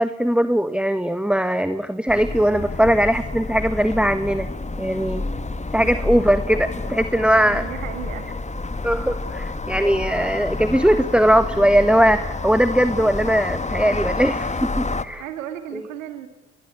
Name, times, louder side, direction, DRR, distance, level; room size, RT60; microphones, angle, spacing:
voice 1, 0.0-4.5 4.8-5.2 5.7-7.6 8.8-15.2, equal, 5° right, 12 dB, 1.3 m, -20 dB
sound 1, 2.1-15.0, left 3 dB, 20° left, 1.7 m, -29 dB
voice 2, 5.8-6.1 7.4-8.3 15.2-16.3, right 10 dB, 90° right, 9 dB, 1.9 m, -34 dB
29.0 x 21.5 x 8.6 m, 1.0 s
hypercardioid pair, 55°, 38 cm